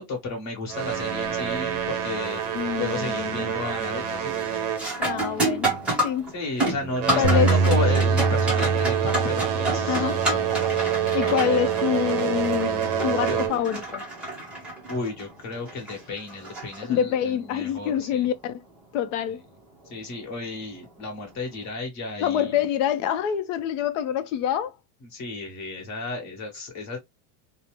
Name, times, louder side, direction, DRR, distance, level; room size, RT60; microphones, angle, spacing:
voice 1, 0.0-4.3 6.3-10.1 11.1-11.7 13.0-13.4 14.9-18.3 19.9-22.6 25.0-27.0, left 3 dB, 35° left, 1.2 m, -33 dB
sound 1, 0.7-5.6 5.9-6.2 6.8-13.8, right 9 dB, 45° right, 0.6 m, -27 dB
sound 2, 2.2-2.6 3.0-3.5 3.8-17.3 19.8-19.9 20.8-21.0, right 1 dB, 5° right, 0.5 m, -30 dB
voice 2, 2.5-3.5 5.0-5.7 6.0-6.3 7.2-7.5 9.9-10.2 11.1-14.0 16.9-18.6 18.9-19.4 22.2-24.7, left 9 dB, 55° left, 0.5 m, -26 dB
Bass guitar, 7.2-11.7 12.3-13.5, right 4 dB, 85° right, 0.6 m, -26 dB
2.6 x 2.0 x 3.0 m
supercardioid pair, 165°, 46 cm